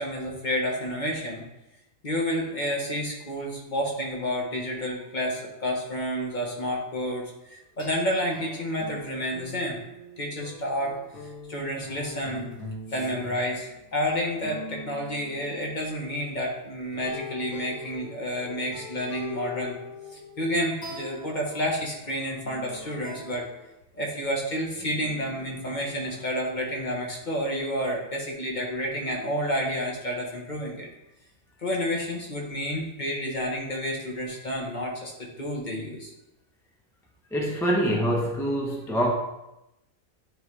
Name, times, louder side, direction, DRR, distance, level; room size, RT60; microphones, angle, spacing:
voice 1, 0.0-1.4 2.0-9.8 10.2-11.0 11.5-12.5 12.9-19.8 20.1-23.5 23.9-30.9 31.6-36.1, equal, 35° left, -1 dB, 1.2 m, -30 dB
sound 1, 7.8-16.2 16.9-23.7 24.7-26.3, left 2 dB, 75° left, 2.1 m, -43 dB
voice 2, 37.3-39.1, equal, 5° left, -1 dB, 0.4 m, -25 dB
9.9 x 3.6 x 3.2 m, 0.91 s
omnidirectional pair, 1.4 m